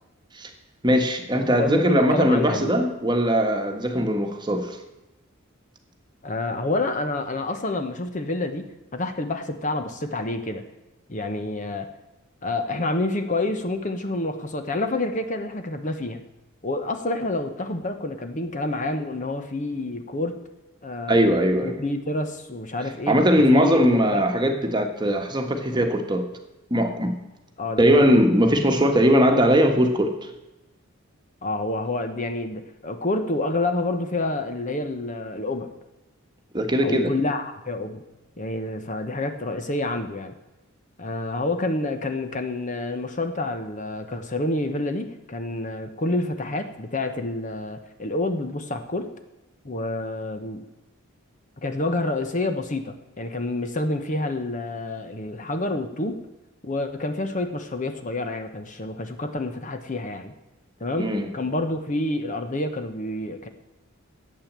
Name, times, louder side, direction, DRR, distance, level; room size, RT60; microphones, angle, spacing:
voice 1, 0.8-4.8 21.1-21.7 23.1-26.3 26.7-27.2 27.8-30.1 36.5-37.1 61.0-61.3, equal, 20° right, 1.4 m, -20 dB
voice 2, 1.6-2.7 6.2-8.6 8.9-10.6 11.1-11.9 12.4-16.2 16.6-20.4 20.8-21.3 21.6-24.2 27.6-28.2 31.4-35.7 36.8-38.0 38.4-40.3 41.0-49.1 49.6-50.6 51.6-56.2 56.6-60.3 60.8-63.5, left 2 dB, 35° left, 1.0 m, -28 dB
12.5 x 8.5 x 7.4 m
head